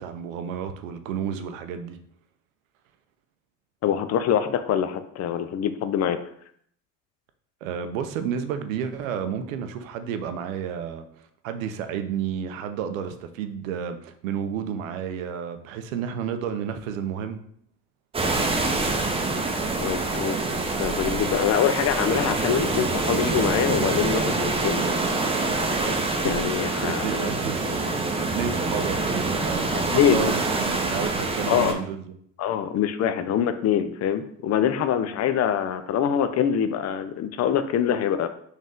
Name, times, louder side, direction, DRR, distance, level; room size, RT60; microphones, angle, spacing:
voice 1, 0.0-2.0 7.6-11.1 11.4-17.4 26.9-27.6 28.0-32.2, right 8 dB, 85° right, 8 dB, 0.5 m, -31 dB
voice 2, 3.8-6.2 19.8-20.4 20.8-24.9 26.2-27.3 29.9-30.3 31.5-31.8 32.4-38.3, left 9 dB, 40° left, 10 dB, 0.5 m, -24 dB
sound 1, 18.1-31.7, right 3 dB, 15° right, 0.6 m, -26 dB
4.0 x 2.6 x 3.6 m, 0.65 s
hypercardioid pair, 65°, 39 cm